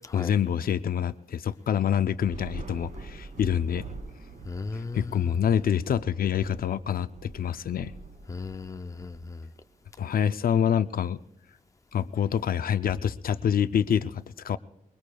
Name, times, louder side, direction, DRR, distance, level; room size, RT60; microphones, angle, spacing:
voice 1, 0.1-3.9 4.7-7.9 10.0-11.2 11.9-14.6, left 8 dB, 75° left, 12 dB, 0.5 m, -26 dB
Thunder / Rain, 2.2-9.7, right 4 dB, 65° right, 3.6 m, -44 dB
voice 2, 4.4-5.4 8.3-9.5, left 4 dB, 20° left, 9 dB, 0.5 m, -36 dB
24.0 x 23.0 x 2.3 m, 0.83 s
wide cardioid pair, 150°, 15 cm